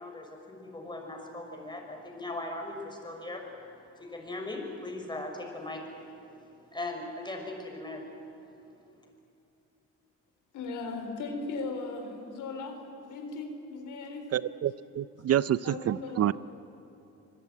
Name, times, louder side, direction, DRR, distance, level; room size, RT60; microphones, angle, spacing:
voice 1, 0.0-3.4 3.9-5.8 6.7-8.0, left 2 dB, 15° left, 2 dB, 5.9 m, -39 dB
voice 2, 10.5-14.3 15.6-16.3, left 3 dB, 80° left, 5 dB, 3.9 m, -38 dB
voice 3, 14.3-16.3, right 11 dB, 55° right, 17 dB, 0.5 m, -28 dB
26.0 x 20.0 x 9.5 m, 2.9 s
cardioid pair, 90°, 30 cm